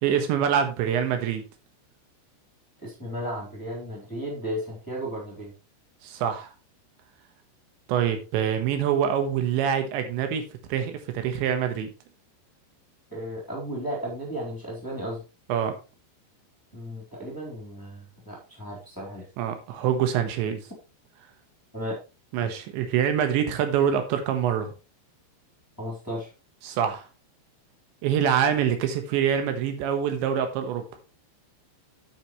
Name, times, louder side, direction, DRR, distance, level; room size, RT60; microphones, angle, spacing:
voice 1, 0.0-1.4 6.0-6.5 7.9-11.9 15.5-15.8 19.4-20.6 22.3-24.7 26.6-27.1 28.0-30.8, right 8 dB, 85° right, 7 dB, 3.6 m, -25 dB
voice 2, 2.8-5.5 13.1-15.2 16.7-19.3 21.7-22.0 22.4-22.5 25.8-26.3, equal, 5° left, -5 dB, 3.2 m, -34 dB
9.8 x 8.9 x 3.1 m, 0.30 s
omnidirectional pair, 5.1 m